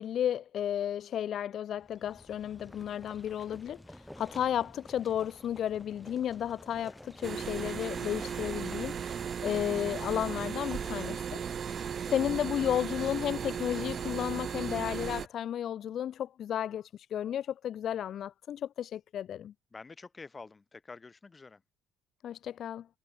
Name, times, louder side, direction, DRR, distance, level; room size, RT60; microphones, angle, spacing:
voice 1, 0.0-9.0 9.4-11.4 12.1-19.5 22.2-22.9, left 10 dB, 55° left, 0.4 m, -33 dB
sound 1, 1.8-11.8, left 1 dB, 5° left, 2.8 m, -51 dB
sound 2, 7.2-15.3, right 7 dB, 40° right, 0.6 m, -36 dB
voice 2, 11.7-12.2 19.7-21.6, left 4 dB, 20° left, 4.5 m, -49 dB
cardioid pair, 115°, 0 cm